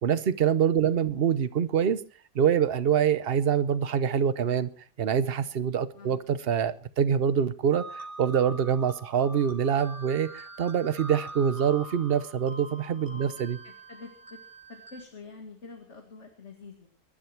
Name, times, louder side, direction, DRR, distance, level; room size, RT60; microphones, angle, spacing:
voice 1, 0.0-2.0 2.3-4.7 5.0-13.6, right 8 dB, 45° right, 0.9 m, -25 dB
sound 1, 7.7-15.0, right 2 dB, 20° right, 2.3 m, -44 dB
voice 2, 13.6-14.4 14.7-16.9, left 4 dB, 45° left, 2.4 m, -47 dB
24.5 x 11.5 x 4.5 m
omnidirectional pair, 1.7 m